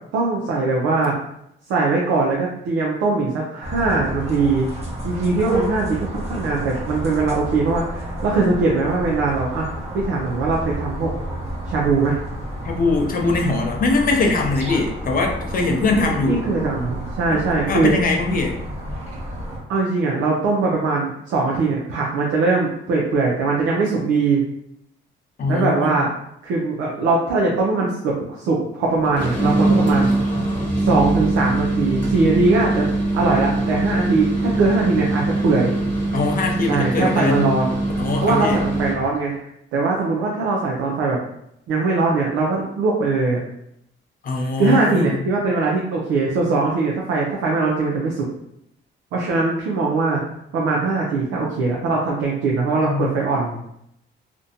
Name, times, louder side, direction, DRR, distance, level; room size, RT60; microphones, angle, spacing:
voice 1, 0.1-1.2 1.7-4.7 5.0-9.7 9.9-11.1 11.7-12.2 15.9-17.9 19.7-24.4 25.5-26.1 26.4-30.1 30.8-32.9 33.1-35.7 36.7-37.7 38.2-41.2 41.7-43.4 44.3-48.3 49.1-50.2 50.5-53.6, right 3 dB, 90° right, -3 dB, 0.5 m, -21 dB
sound 1, 3.6-19.6, equal, 30° right, 0.8 m, -30 dB
voice 2, 12.6-16.4 17.3-17.4 17.7-18.6 25.4-26.0 36.1-37.6 38.0-38.6 44.2-45.2 52.8-53.1, left 3 dB, 45° left, 1 dB, 0.5 m, -22 dB
sound 2, 29.0-39.1, right 2 dB, 10° left, 1.0 m, -22 dB
2.5 x 2.1 x 2.7 m, 0.75 s
cardioid pair, 90°, 20 cm